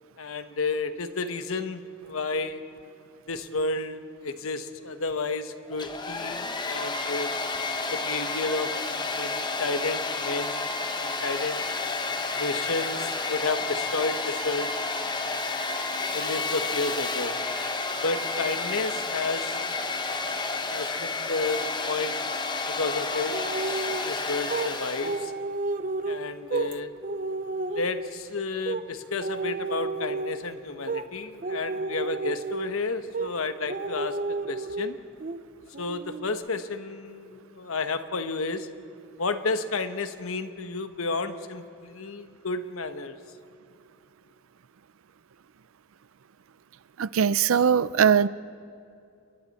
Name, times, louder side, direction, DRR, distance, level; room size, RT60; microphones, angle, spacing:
voice 1, 0.2-2.6 3.3-7.3 7.9-10.6 11.0-11.6 12.4-14.7 16.1-17.3 18.0-19.8 20.7-21.6 21.9-22.1 22.7-25.3 26.1-26.9 27.7-35.0 35.8-38.7 39.2-43.2, left 3 dB, 85° left, 1.1 m, -31 dB
Domestic sounds home sounds, 5.7-25.3, left 3 dB, 20° left, 1.0 m, -31 dB
sound 1, 23.3-24.1 24.5-24.7 25.0-26.7 27.0-28.1 28.7-28.8 29.2-30.5 30.8-31.1 31.4-32.7 33.1-33.3 33.7-34.9 35.2-35.4 35.7-36.3, right 3 dB, 40° right, 0.7 m, -31 dB
voice 2, 47.0-48.3, right 7 dB, 75° right, 0.5 m, -20 dB
29.0 x 22.0 x 4.2 m
head